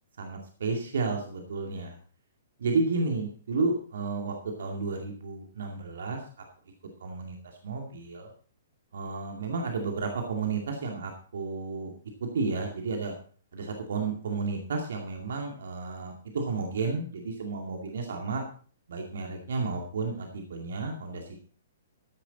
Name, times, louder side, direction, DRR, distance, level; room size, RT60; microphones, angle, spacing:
voice 1, 0.2-2.0 2.6-6.2 7.0-7.4 7.6-8.3 8.9-11.9 12.3-13.1 13.5-18.4 18.9-21.3, right 4 dB, 60° right, 2 dB, 2.3 m, -32 dB
14.5 x 10.5 x 4.0 m, 0.42 s
figure-of-eight pair, 115°, 0 cm